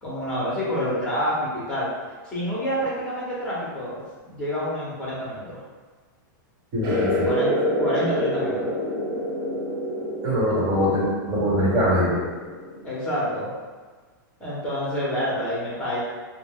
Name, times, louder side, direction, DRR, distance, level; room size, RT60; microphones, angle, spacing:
voice 1, 0.0-1.9 2.2-5.6 7.2-8.7 12.8-13.5 14.4-16.0, equal, 10° left, -7 dB, 1.0 m, -28 dB
voice 2, 6.7-7.4 10.2-12.2, equal, 30° right, -7 dB, 1.3 m, -22 dB
sound 1, 6.8-13.0, equal, 70° right, 0.8 m, -27 dB
2.6 x 2.1 x 3.7 m, 1.4 s
supercardioid pair, 155°, 11 cm